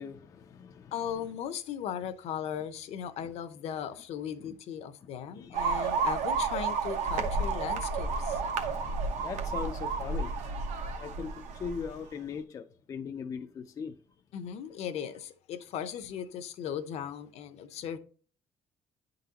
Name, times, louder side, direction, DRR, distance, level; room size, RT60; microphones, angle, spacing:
voice 1, 0.0-0.9 3.2-3.3 4.4-4.5 5.3-5.5 5.8-6.0 8.3-10.3 11.0-13.9, left 6 dB, 30° left, 0.4 m, -40 dB
voice 2, 0.9-8.4 14.3-18.0, left 9 dB, 60° left, 0.7 m, -37 dB
sound 1, 5.5-11.9, right 4 dB, 75° right, 1.0 m, -31 dB
10.0 x 3.9 x 2.8 m
cardioid pair, 180°, 12 cm